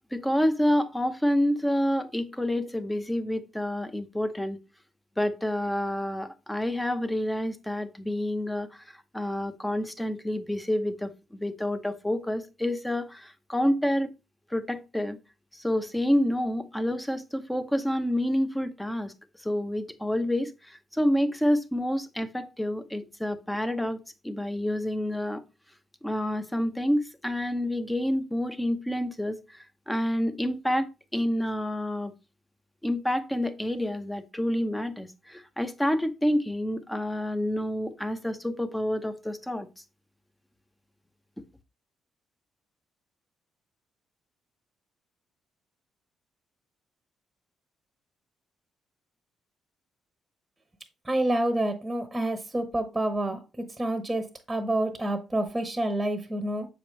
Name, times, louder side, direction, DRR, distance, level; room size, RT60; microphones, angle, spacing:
voice 1, 0.1-4.6 5.2-14.1 14.5-15.2 15.5-19.1 19.4-25.4 26.0-32.1 32.8-39.7, left 1 dB, 5° left, 0.8 m, -28 dB
voice 2, 51.0-56.7, right 1 dB, 15° right, 1.0 m, -28 dB
6.9 x 5.0 x 3.2 m
cardioid pair, 90°, 0 cm